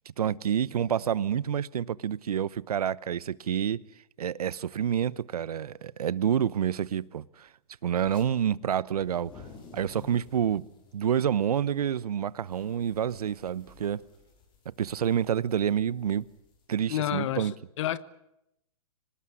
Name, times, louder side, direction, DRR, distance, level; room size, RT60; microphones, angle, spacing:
voice 1, 0.2-3.8 4.2-7.5 7.8-9.3 9.7-10.7 10.9-14.0 14.8-16.3 16.7-17.5, right 9 dB, 80° right, 0.9 m, -28 dB
sound 1, 8.0-8.3 8.9-17.4, left 4 dB, 25° left, 5.4 m, -54 dB
voice 2, 16.9-17.5 17.8-18.0, left 13 dB, 55° left, 1.3 m, -29 dB
25.0 x 19.0 x 9.8 m
hypercardioid pair, 140°, 19 cm